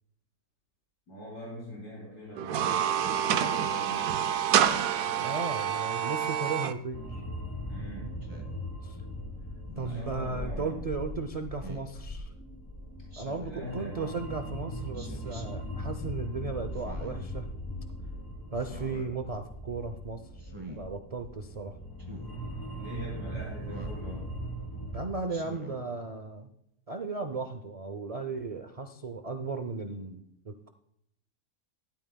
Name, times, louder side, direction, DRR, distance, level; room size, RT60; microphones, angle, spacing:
voice 1, 1.1-5.5 7.7-8.2 9.8-10.8 13.4-14.2 22.8-24.3, equal, 85° left, -5 dB, 4.2 m, -43 dB
sound 1, 2.4-6.7, right 9 dB, 90° right, 1.2 m, -27 dB
voice 2, 5.2-7.3 8.8-9.0 9.8-12.3 13.2-17.5 18.5-20.2 20.7-21.8 24.9-26.5 26.9-30.7, right 4 dB, 60° right, 6 dB, 0.3 m, -36 dB
sound 2, 6.9-25.1, equal, 15° left, 1.2 m, -39 dB
Speech synthesizer, 8.2-8.6 9.7-10.2 11.6-11.9 13.1-13.6 14.9-15.4 16.7-17.3 18.6-19.1 20.4-20.8 22.0-22.3 23.6-24.0 25.3-25.8, right 1 dB, 20° right, 1.5 m, -45 dB
13.0 x 12.0 x 2.3 m, 0.76 s
omnidirectional pair, 1.6 m